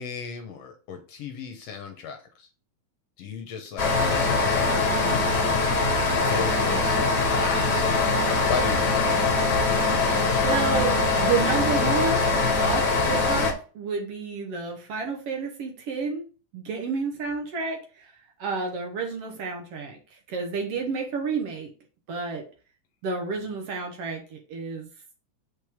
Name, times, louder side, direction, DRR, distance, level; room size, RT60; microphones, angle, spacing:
voice 1, 0.0-2.2 3.2-5.6 6.1-9.0, left 5 dB, 70° left, 5 dB, 1.8 m, -36 dB
sound 1, 3.8-13.5, left 3 dB, 45° left, 1.5 m, -22 dB
voice 2, 10.4-12.2 12.6-16.3 16.5-18.1 18.4-21.7 22.1-22.4 23.0-24.9, right 5 dB, 60° right, 3 dB, 1.8 m, -30 dB
6.4 x 5.2 x 3.5 m, 0.36 s
omnidirectional pair, 3.5 m